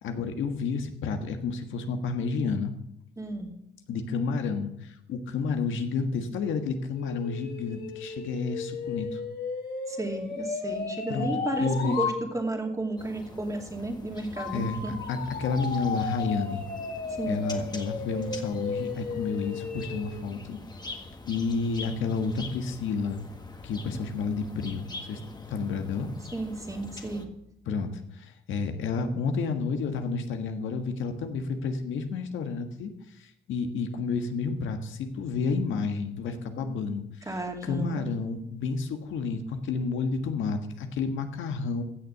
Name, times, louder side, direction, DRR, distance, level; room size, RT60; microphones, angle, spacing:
voice 1, 0.0-2.7 3.9-9.2 11.1-11.3 11.6-12.0 14.5-16.7 17.3-20.6 21.2-23.2 23.6-25.2 25.5-26.1 27.7-37.3 37.6-41.8, left 4 dB, 75° left, 6 dB, 1.5 m, -30 dB
voice 2, 3.2-3.5 9.9-15.0 17.2-17.4 26.3-27.3 37.3-38.1, right 2 dB, 15° right, 3 dB, 2.5 m, -32 dB
sound 1, 6.9-12.2 14.4-20.2, left 5 dB, 50° left, 2.8 m, -34 dB
sound 2, 13.0-27.2, left 3 dB, 20° left, 1.7 m, -44 dB
15.5 x 7.0 x 6.7 m, 0.78 s
cardioid pair, 90°, 20 cm